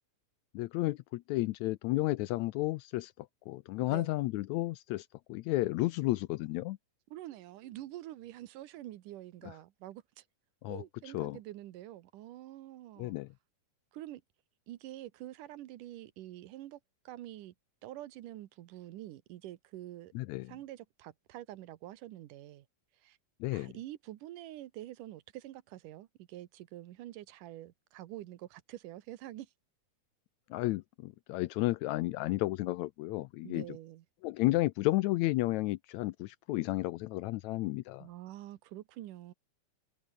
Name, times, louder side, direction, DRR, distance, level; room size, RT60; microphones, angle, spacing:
voice 1, 0.5-6.8 9.4-9.5 10.6-10.8 11.1-11.4 13.0-13.3 20.2-20.5 23.4-23.7 30.5-33.7 34.2-38.1, left 18 dB, 80° left, 1.7 m, -32 dB
voice 2, 7.1-10.2 10.7-13.2 13.9-14.2 14.7-16.8 17.0-17.5 17.8-20.1 20.5-22.7 23.0-23.2 23.5-29.5 33.4-34.0 38.0-39.3, right 14 dB, 85° right, 2.6 m, -46 dB
omnidirectional pair, 3.6 m